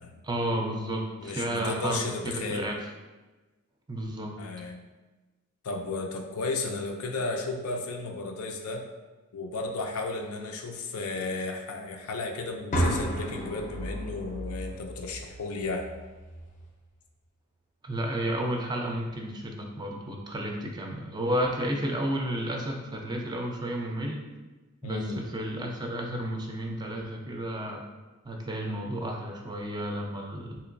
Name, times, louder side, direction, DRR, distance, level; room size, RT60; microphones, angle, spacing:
voice 1, 0.2-2.8 3.9-4.3 17.8-24.3 24.8-27.8 28.2-30.6, right 1 dB, 20° right, 1 dB, 0.4 m, -32 dB
voice 2, 1.2-2.7 4.4-4.8 5.6-8.8 9.3-15.9 24.8-25.2, left 3 dB, 90° left, 3 dB, 0.4 m, -34 dB
sound 1, 12.7-16.7, right 1 dB, 35° left, 0.5 m, -33 dB
3.7 x 2.9 x 2.5 m, 1.2 s
head